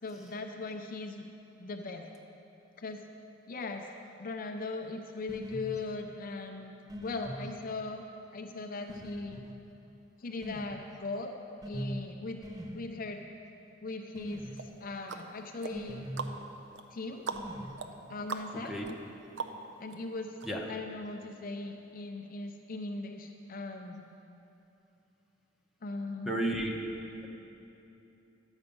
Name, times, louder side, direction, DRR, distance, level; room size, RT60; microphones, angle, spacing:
voice 1, 0.0-1.3 1.6-2.1 2.8-3.0 3.5-3.9 4.2-6.7 7.0-9.4 10.2-11.4 11.6-12.4 12.7-13.2 13.8-16.1 16.9-17.3 18.1-18.8 19.8-20.4 20.7-24.1 25.8-26.4, left 3 dB, 45° left, 4 dB, 0.6 m, -39 dB
sound 1, 5.3-5.7 6.9-7.5 8.9-9.5 10.4-10.8 11.6-12.0 12.4-12.8 14.1-14.7 15.7-16.4 17.3-17.8, equal, 20° right, 0.7 m, -41 dB
sound 2, 14.6-20.0 20.4-20.5, right 5 dB, 65° right, 0.6 m, -42 dB
voice 2, 18.5-18.9 20.4-20.7 26.2-26.8, right 1 dB, ahead, -1 dB, 1.0 m, -33 dB
11.5 x 8.1 x 5.3 m, 2.9 s
head